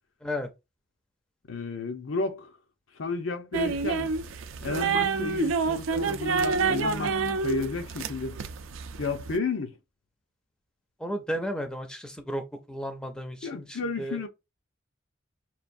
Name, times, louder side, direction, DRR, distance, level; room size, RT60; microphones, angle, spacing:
voice 1, 1.5-2.5 2.9-4.1 4.6-8.4 9.0-9.7 13.4-14.3, left 3 dB, 80° left, 0.7 m, -32 dB
sound 1, 3.5-9.4, right 5 dB, 85° right, 0.4 m, -28 dB
voice 2, 11.0-12.4 12.7-14.2, equal, 5° left, 0.5 m, -33 dB
5.6 x 2.3 x 2.6 m
head